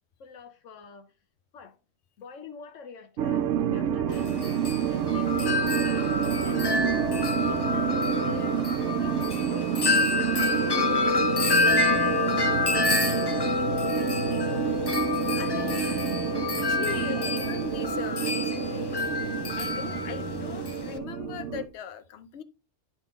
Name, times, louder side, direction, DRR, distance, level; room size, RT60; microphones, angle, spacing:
voice 1, 0.2-1.1 1.5-1.8 2.2-4.3 4.8-6.9 7.5-12.4 12.8-14.7 15.6-16.4 16.8-17.5, left 5 dB, 85° left, 1.2 m, -46 dB
sound 1, 3.2-21.7, right 9 dB, 80° right, 1.0 m, -29 dB
Wind chime, 4.1-21.0, left 4 dB, 35° left, 0.4 m, -28 dB
voice 2, 15.3-15.9 16.6-19.0 19.3-22.4, left 8 dB, 65° left, 1.0 m, -39 dB
10.0 x 3.7 x 4.0 m
omnidirectional pair, 1.3 m